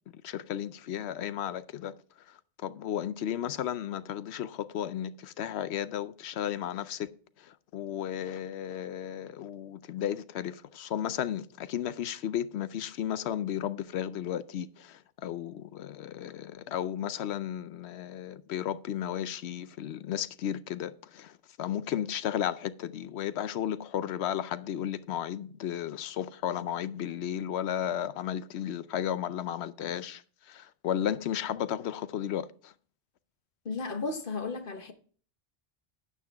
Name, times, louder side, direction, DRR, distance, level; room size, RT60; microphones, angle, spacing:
voice 1, 0.2-1.9 2.6-7.1 7.4-32.7, left 10 dB, 85° left, 0.9 m, -34 dB
voice 2, 33.6-34.9, left 4 dB, 55° left, 1.3 m, -34 dB
9.4 x 9.2 x 3.4 m
omnidirectional pair, 1.1 m